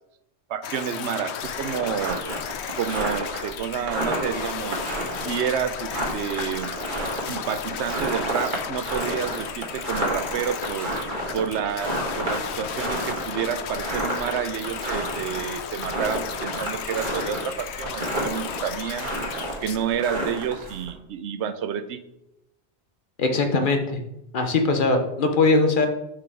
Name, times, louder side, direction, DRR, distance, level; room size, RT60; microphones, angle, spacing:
voice 1, 0.5-2.2 2.8-4.8 5.2-6.7 7.2-10.9 11.3-19.1 19.6-22.0, right 8 dB, 90° right, 11 dB, 0.9 m, -29 dB
sound 1, 0.6-19.8, left 8 dB, 80° left, 0.9 m, -34 dB
sound 2, 1.4-20.9, right 1 dB, 50° right, 1.6 m, -31 dB
voice 2, 23.2-24.0 24.3-25.9, left 3 dB, 55° left, 5 dB, 0.9 m, -21 dB
5.9 x 4.9 x 4.7 m, 0.85 s
omnidirectional pair, 1.1 m